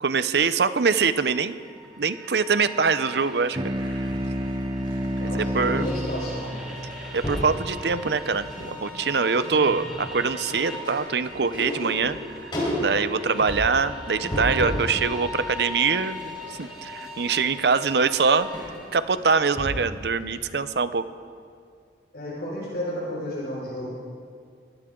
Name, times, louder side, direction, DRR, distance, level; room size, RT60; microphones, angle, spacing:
voice 1, 0.0-1.5 2.0-3.6 3.9-4.1 5.2-5.8 7.1-12.2 12.8-18.5 18.9-21.0, right 5 dB, 65° right, 13 dB, 0.7 m, -24 dB
sound 1, 0.8-18.8, left 1 dB, 5° right, 4.0 m, -40 dB
sound 2, 3.5-8.4, equal, 25° right, 0.6 m, -31 dB
sound 3, 3.8-5.9 6.2-6.5 6.7-7.6 8.1-8.8 9.1-14.9 15.3-20.0 20.3-20.4, equal, 25° left, 4.7 m, -34 dB
voice 2, 5.2-6.6 9.4-9.8 22.1-23.9, left 1 dB, 60° left, -8 dB, 5.2 m, -32 dB
23.0 x 16.5 x 3.8 m, 2.1 s
head